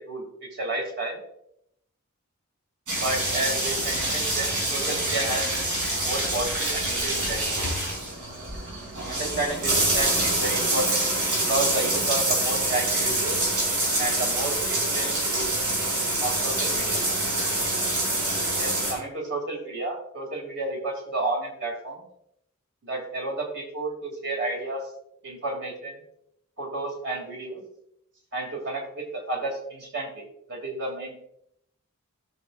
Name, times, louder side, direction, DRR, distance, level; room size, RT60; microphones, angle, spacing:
voice 1, 0.1-1.2 3.0-5.6 6.0-7.6 9.0-11.0 11.4-13.4 14.0-15.5 16.2-17.0 18.6-22.0 22.8-24.8 25.2-25.9 26.6-27.6 28.3-30.2 30.5-31.2, right 2 dB, 50° right, 0 dB, 2.8 m, -31 dB
sound 1, 2.9-18.9, right 1 dB, 85° right, 4.1 m, -26 dB
16.5 x 6.3 x 2.5 m, 0.77 s
head